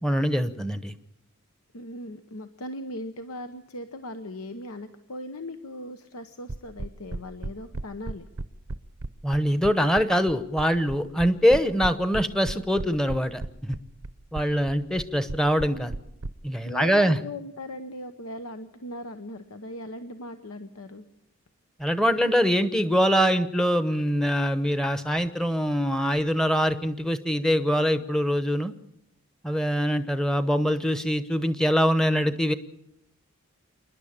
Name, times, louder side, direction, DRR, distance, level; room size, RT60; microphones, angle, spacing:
voice 1, 0.0-0.9 9.2-13.8 14.3-15.9 16.4-17.2 21.8-28.7 29.4-32.5, equal, 5° left, 10 dB, 0.8 m, -23 dB
voice 2, 1.7-8.3 16.6-21.0, left 1 dB, 85° left, 8 dB, 1.0 m, -39 dB
sound 1, 6.5-16.3, right 2 dB, 75° right, 0.8 m, -34 dB
27.5 x 11.0 x 8.7 m, 0.81 s
head